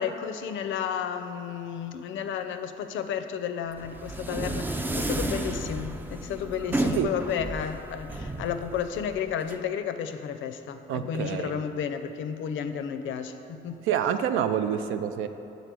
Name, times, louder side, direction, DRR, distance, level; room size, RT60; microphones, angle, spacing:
voice 1, 0.0-13.8, left 7 dB, 75° left, 9 dB, 0.5 m, -32 dB
sound 1, 3.8-9.6, right 1 dB, 10° right, 0.3 m, -32 dB
voice 2, 10.9-11.6 13.8-15.3, right 9 dB, 85° right, 9 dB, 0.4 m, -27 dB
6.8 x 4.0 x 6.0 m, 2.7 s
cardioid pair, 90°, 20 cm